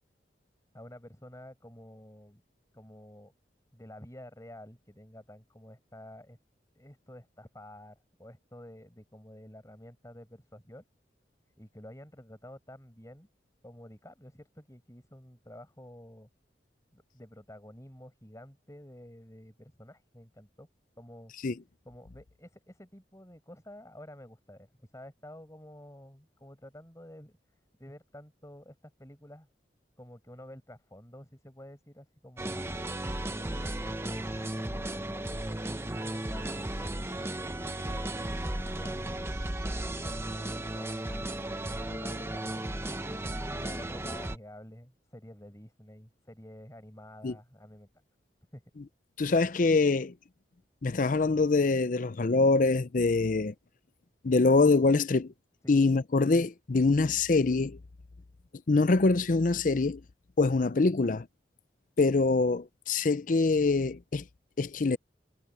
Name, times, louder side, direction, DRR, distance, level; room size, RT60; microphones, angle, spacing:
voice 1, 0.7-2.4 2.7-3.3 3.7-6.4 6.7-10.8 11.6-13.3 13.6-16.3 16.9-20.7 21.0-21.3 21.8-24.7 24.9-27.4 27.8-29.5 30.0-32.6 33.2-37.1 37.3-38.4 38.7-39.4 39.7-42.6 43.5-47.9 48.5-48.6 55.6-55.8, left 1 dB, 20° left, 5.7 m, -50 dB
sound 1, 32.4-44.4, right 1 dB, 15° right, 1.0 m, -35 dB
voice 2, 49.2-50.1 50.8-53.5 54.2-55.3 55.7-57.8 58.7-60.0 60.4-61.3 62.0-64.2 64.6-65.0, left 3 dB, 50° left, 0.5 m, -24 dB
head